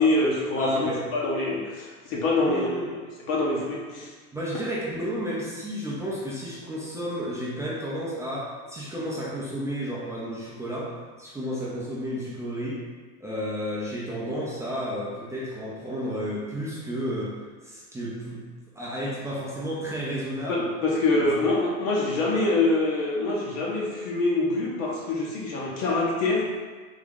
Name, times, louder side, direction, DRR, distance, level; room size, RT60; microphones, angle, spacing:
voice 1, 0.0-2.7 3.3-4.1 20.5-26.5, left 2 dB, 60° left, -4 dB, 0.9 m, -25 dB
voice 2, 0.6-1.1 2.4-2.9 4.3-12.8 13.2-18.4 18.7-20.7 21.1-21.3, equal, 5° right, -7 dB, 0.5 m, -32 dB
3.6 x 2.8 x 3.6 m, 1.4 s
hypercardioid pair, 115°, 45 cm